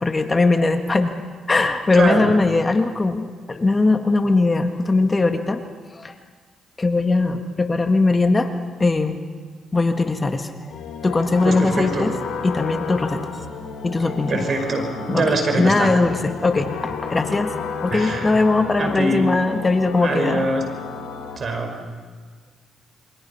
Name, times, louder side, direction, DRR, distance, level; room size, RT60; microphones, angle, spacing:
voice 1, 0.0-1.1 1.5-5.6 5.9-6.1 6.8-8.5 8.8-9.2 9.7-10.7 11.0-12.1 12.4-13.3 13.8-14.5 15.1-17.5 17.8-20.5, left 3 dB, 25° left, 6 dB, 1.8 m, -20 dB
voice 2, 1.9-2.3 11.4-12.1 14.0-15.9 17.9-19.3 20.0-20.6 21.4-21.8, right 2 dB, 50° right, 5 dB, 5.5 m, -24 dB
sound 1, 10.7-21.4, left 5 dB, 80° left, 3.2 m, -32 dB
27.5 x 24.0 x 5.7 m, 1.5 s
supercardioid pair, 70°, 0 cm